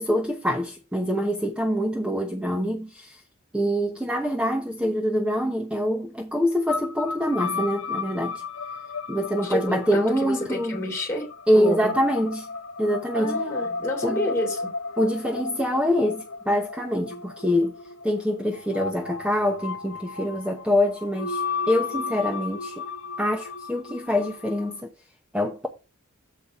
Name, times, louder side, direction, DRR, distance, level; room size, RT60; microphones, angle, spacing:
voice 1, 0.0-3.2 3.5-8.4 9.1-10.8 11.5-12.5 12.8-13.4 14.0-14.2 15.0-17.8 18.0-22.9 23.2-24.9 25.3-25.7, equal, 5° right, 0.9 m, -25 dB
sound 1, 6.7-24.8, left 4 dB, 80° left, 0.9 m, -34 dB
voice 2, 9.4-11.3 11.5-11.9 13.1-14.7, left 1 dB, 15° left, 3.2 m, -29 dB
7.4 x 5.1 x 5.3 m
head